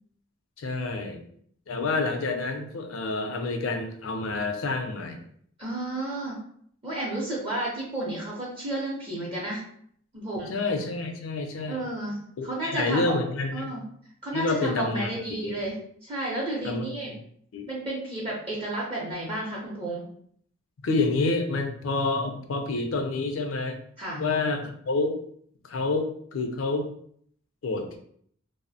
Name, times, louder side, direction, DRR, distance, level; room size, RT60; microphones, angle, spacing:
voice 1, 0.6-1.2 1.7-5.2 10.5-11.8 12.4-13.7 14.3-15.1 15.4-15.6 16.6-16.8 17.5-17.7 20.8-23.8 24.2-25.2 25.7-26.9 27.6-28.0, left 3 dB, 80° left, 4 dB, 0.4 m, -28 dB
voice 2, 5.6-6.4 6.8-9.6 10.1-10.5 11.7-12.2 12.4-13.1 13.5-13.8 14.2-15.7 16.0-17.1 17.7-20.0 24.0-24.2, right 1 dB, 30° right, -5 dB, 0.6 m, -32 dB
2.6 x 2.0 x 2.6 m, 0.64 s
head